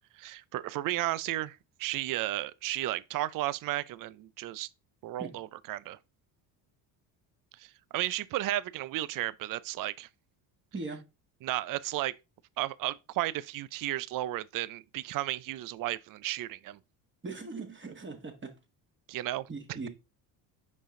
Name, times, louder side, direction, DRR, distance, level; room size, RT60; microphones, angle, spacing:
voice 1, 0.2-4.7 5.0-6.0 7.6-10.1 11.4-12.1 12.6-16.8 19.1-19.5, right 15 dB, 45° right, 0.5 m, -34 dB
voice 2, 17.2-18.5 19.5-19.9, right 3 dB, 25° right, 1.6 m, -39 dB
5.3 x 5.1 x 3.7 m
supercardioid pair, 80°, 50 cm